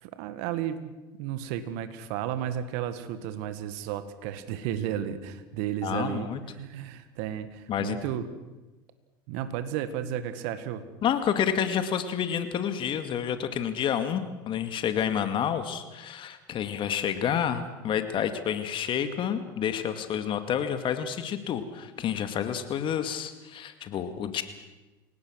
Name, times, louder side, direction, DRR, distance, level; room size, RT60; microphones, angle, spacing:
voice 1, 0.0-0.9 1.2-6.3 6.6-8.3 9.3-10.8, right 10 dB, 65° right, 11 dB, 1.8 m, -33 dB
voice 2, 5.8-6.4 7.7-8.0 11.0-24.4, left 8 dB, 45° left, 9 dB, 2.2 m, -29 dB
29.0 x 18.0 x 6.4 m, 1.1 s
hypercardioid pair, 80°, 12 cm